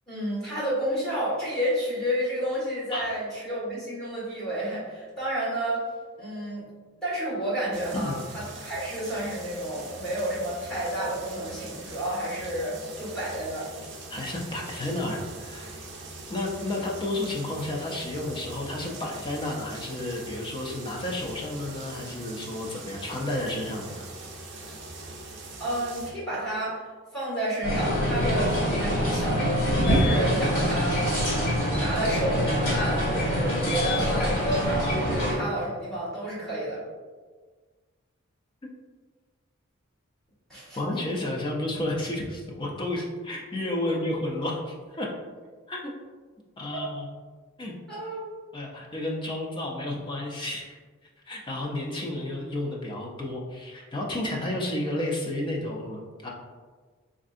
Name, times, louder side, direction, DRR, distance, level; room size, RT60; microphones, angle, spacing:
voice 1, 0.1-5.8 6.2-6.6 7.0-13.7 25.6-26.8 27.1-29.6 29.8-36.8 40.5-40.8 46.7-46.8 47.9-48.2, right 1 dB, 5° left, -11 dB, 1.4 m, -30 dB
sound 1, 7.7-26.1, right 2 dB, 55° right, 0.5 m, -42 dB
voice 2, 14.1-15.8 16.3-24.1 40.8-45.1 45.7-45.9 46.6-47.1 47.6-47.7 48.5-50.8 51.3-56.3, left 1 dB, 20° left, -1 dB, 0.4 m, -31 dB
sound 2, 27.6-35.4, equal, 75° left, 1.4 m, -25 dB
3.5 x 2.5 x 2.4 m, 1.5 s
head